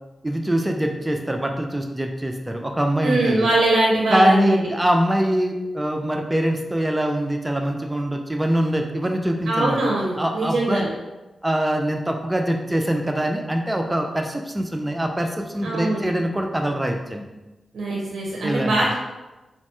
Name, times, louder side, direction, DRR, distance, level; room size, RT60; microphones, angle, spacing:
voice 1, 0.2-3.5 4.1-9.8 10.2-10.9 11.4-17.2 18.4-18.7, right 1 dB, 15° right, 4 dB, 0.3 m, -23 dB
voice 2, 3.0-4.6 9.5-10.9 15.6-16.0 17.7-18.9, right 2 dB, 85° right, -3 dB, 0.5 m, -22 dB
3.0 x 2.1 x 3.0 m, 1.1 s
cardioid pair, 65°, 0 cm